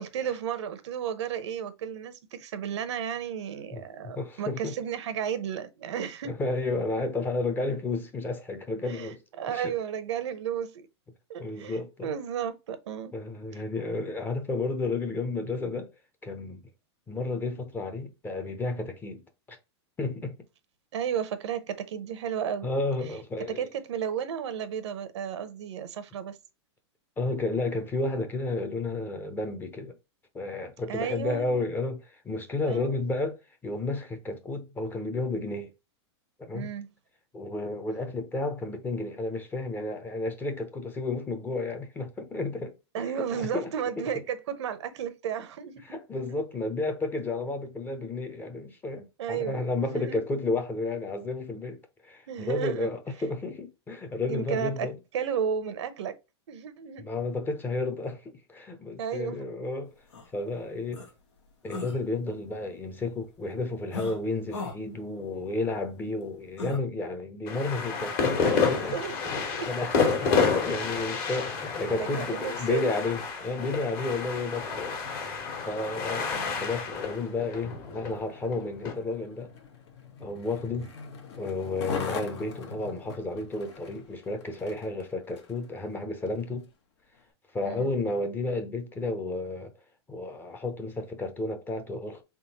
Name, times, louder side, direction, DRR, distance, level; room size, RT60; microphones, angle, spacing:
voice 1, 0.0-6.3 8.9-10.9 11.3-13.1 20.9-22.7 23.5-26.4 30.9-31.6 32.6-33.0 36.5-36.9 42.9-46.0 46.3-46.4 49.2-50.2 52.3-52.9 54.3-56.2 56.5-57.1 59.0-59.5 65.3-65.4 68.5-69.7 71.9-72.8 76.3-76.7 87.6-87.9, right 8 dB, 80° right, 0.8 m, -33 dB
voice 2, 3.7-4.7 6.2-9.2 9.5-9.7 11.4-12.1 13.1-15.9 16.2-16.6 17.1-19.2 19.5-19.6 20.0-20.4 22.6-23.7 27.2-29.9 30.3-35.7 36.4-36.7 37.3-43.7 44.0-44.1 45.8-55.0 57.0-59.9 60.3-61.1 61.6-69.0 69.6-75.0 75.6-79.5 80.2-80.9 81.4-86.7 87.5-89.7 90.1-92.2, left 2 dB, 15° left, 0.7 m, -32 dB
sound 1, 60.1-60.2 60.9-61.1 61.7-62.0 63.9-64.2 64.5-64.8 66.6-66.8, left 4 dB, 85° left, 1.6 m, -36 dB
sound 2, 67.5-78.9, left 5 dB, 45° left, 1.6 m, -29 dB
Skateboard, 76.9-85.7 86.3-86.4, left 5 dB, 70° left, 1.3 m, -42 dB
3.6 x 3.5 x 2.9 m
supercardioid pair, 145°, 15 cm